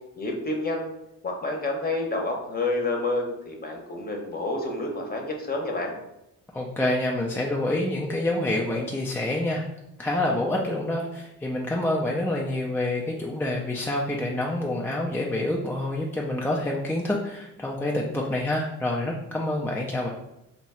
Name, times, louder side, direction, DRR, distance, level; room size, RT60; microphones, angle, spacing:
voice 1, 0.2-0.9 1.2-5.9, left 2 dB, 30° left, 1 dB, 0.9 m, -29 dB
voice 2, 6.5-9.6 10.0-20.1, left 1 dB, 5° left, -2 dB, 0.4 m, -27 dB
2.9 x 2.3 x 4.2 m, 0.87 s
cardioid pair, 90°, 30 cm